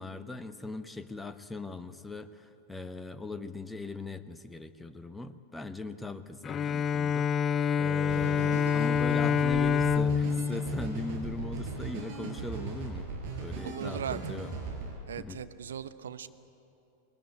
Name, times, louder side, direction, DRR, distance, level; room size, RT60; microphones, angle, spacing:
voice 1, 0.0-7.3 7.8-13.1 13.4-14.5 15.2-15.4, left 2 dB, 5° left, 10 dB, 1.0 m, -40 dB
Bowed string instrument, 6.4-11.9, left 7 dB, 25° left, 0.4 m, -27 dB
sound 1, 8.1-14.9, right 4 dB, 45° right, 5.0 m, -38 dB
voice 2, 13.6-14.3 15.1-16.3, right 8 dB, 65° right, 11 dB, 0.9 m, -38 dB
20.0 x 19.5 x 9.9 m, 2.8 s
figure-of-eight pair, 90°, 0 cm